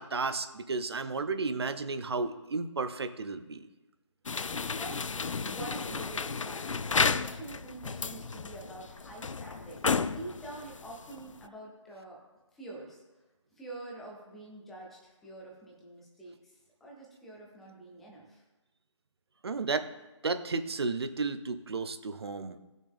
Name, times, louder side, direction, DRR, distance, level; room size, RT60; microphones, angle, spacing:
voice 1, 0.0-3.6 19.4-19.9 20.2-22.6, right 4 dB, 55° right, 10 dB, 0.8 m, -33 dB
sound 1, 4.3-11.5, left 5 dB, 90° left, 0.5 m, -33 dB
voice 2, 4.8-12.2 12.5-13.0 13.5-18.4, right 2 dB, ahead, -3 dB, 0.5 m, -46 dB
15.5 x 6.3 x 3.6 m, 1.1 s
figure-of-eight pair, 165°, 16 cm